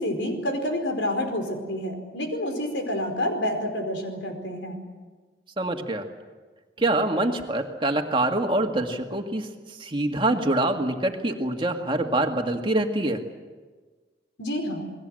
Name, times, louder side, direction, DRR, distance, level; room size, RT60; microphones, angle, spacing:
voice 1, 0.0-4.8 14.4-14.9, left 1 dB, 90° left, 5 dB, 4.8 m, -28 dB
voice 2, 5.6-6.0 6.8-9.5 9.8-13.2, right 1 dB, 30° right, 4 dB, 2.0 m, -25 dB
29.0 x 20.5 x 7.8 m, 1.4 s
head